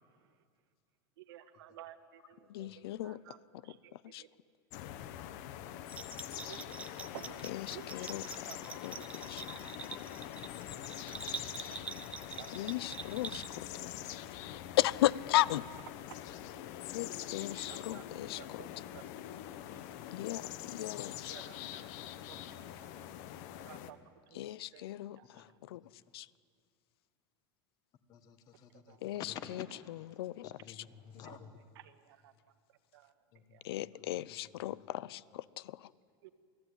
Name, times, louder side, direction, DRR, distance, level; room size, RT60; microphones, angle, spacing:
voice 1, 1.2-4.3 6.5-6.8 7.1-7.4 7.7-8.6 9.0-9.1 11.1-11.2 12.4-12.5 12.8-13.1 13.7-13.9 16.1-16.2 16.5-16.6 17.5-18.0 18.4-19.0 19.7-19.8 21.3-23.1 23.6-24.0 24.3-24.4 24.7-25.4 28.9-29.0 30.8-31.4 31.8-32.3 32.9-33.1 33.5-33.6 36.2-36.3, right 13 dB, 80° right, 9 dB, 1.8 m, -54 dB
voice 2, 2.5-4.2 7.4-8.6 8.8-9.5 12.5-13.7 14.8-15.7 16.9-18.7 20.1-21.3 24.3-26.3 29.0-30.8 33.6-35.9, left 15 dB, 85° left, 21 dB, 0.7 m, -36 dB
sound 1, 4.7-23.9, left 12 dB, 45° left, 1.1 m, -44 dB
Bell, 5.9-13.8, right 5 dB, 10° right, 0.7 m, -45 dB
voice 3, 6.3-7.1 12.5-12.8 16.2-16.4 19.5-20.3 25.3-25.5 28.1-30.0 30.4-31.6 33.3-34.5, left 8 dB, 30° left, 10 dB, 1.6 m, -53 dB
28.0 x 18.0 x 9.9 m, 2.1 s
supercardioid pair, 175°, 12 cm